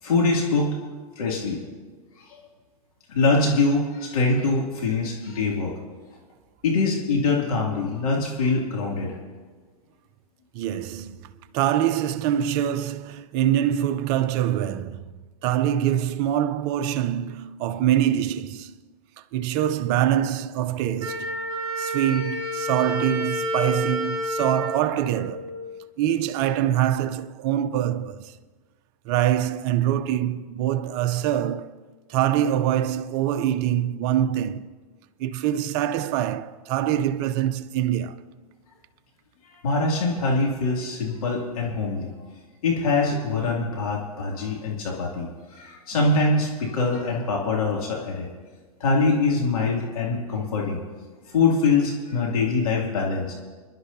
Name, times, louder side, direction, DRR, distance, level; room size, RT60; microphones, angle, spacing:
voice 1, 0.0-0.8 1.2-1.6 2.2-2.4 3.1-5.8 6.6-9.1 39.4-42.1 42.6-48.3 48.8-50.8 51.3-53.3, left 3 dB, 70° left, 2.7 m, -24 dB
voice 2, 10.5-18.8 19.2-21.4 21.8-25.6 26.0-28.4 29.0-34.7 35.2-38.2, right 11 dB, 40° right, 0.6 m, -24 dB
Wind instrument woodwind instrument, 21.0-25.8, equal, 20° right, 3.8 m, -29 dB
27.0 x 11.5 x 2.8 m
hypercardioid pair, 105°, 19 cm